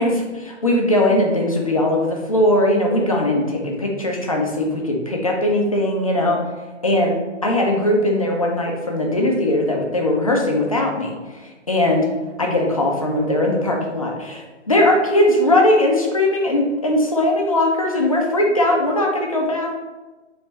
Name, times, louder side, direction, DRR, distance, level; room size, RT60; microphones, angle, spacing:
voice 1, 0.0-6.4 6.8-7.1 7.4-12.1 12.4-19.7, left 1 dB, 30° left, 0 dB, 0.4 m, -19 dB
4.2 x 3.1 x 3.3 m, 1.2 s
hypercardioid pair, 170°, 36 cm